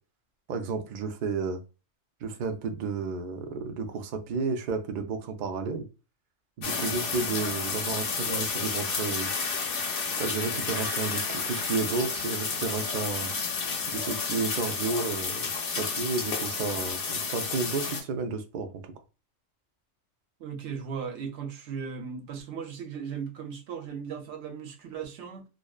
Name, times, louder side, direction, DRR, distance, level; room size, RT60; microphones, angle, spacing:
voice 1, 0.5-1.6 2.2-5.8 6.6-9.3 10.2-13.3 13.9-18.9, right 4 dB, 85° right, 0.4 m, -32 dB
sound 1, 6.6-18.0, left 5 dB, 55° left, 0.7 m, -31 dB
voice 2, 20.4-25.5, right 6 dB, 65° right, 0.9 m, -37 dB
2.6 x 2.1 x 2.2 m
omnidirectional pair, 1.4 m